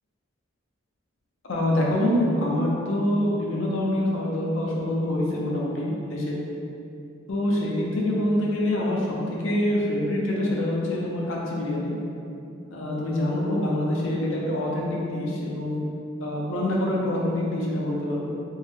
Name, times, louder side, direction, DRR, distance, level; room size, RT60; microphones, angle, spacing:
voice 1, 1.4-6.4 7.3-11.9 12.7-15.8 16.2-18.3, left 1 dB, 70° left, -3 dB, 0.6 m, -25 dB
3.5 x 2.1 x 3.5 m, 2.6 s
head